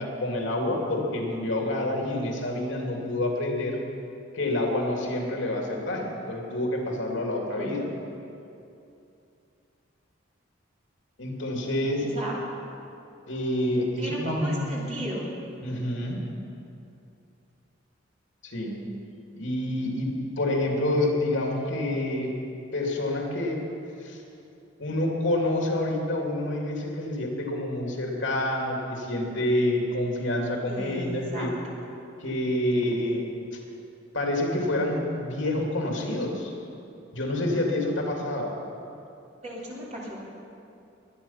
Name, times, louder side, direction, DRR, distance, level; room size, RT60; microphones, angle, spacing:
voice 1, 0.0-3.8 4.3-7.9 11.2-12.1 13.3-14.7 15.6-16.2 18.4-18.8 19.3-22.3 22.7-23.6 24.0-24.2 24.8-31.5 32.2-33.3 34.1-36.5 37.1-38.5, left 1 dB, 75° left, 0 dB, 2.7 m, -28 dB
voice 2, 14.0-15.3 30.7-31.5 39.4-40.2, equal, 35° right, -4 dB, 3.1 m, -35 dB
22.0 x 9.3 x 5.8 m, 2.7 s
head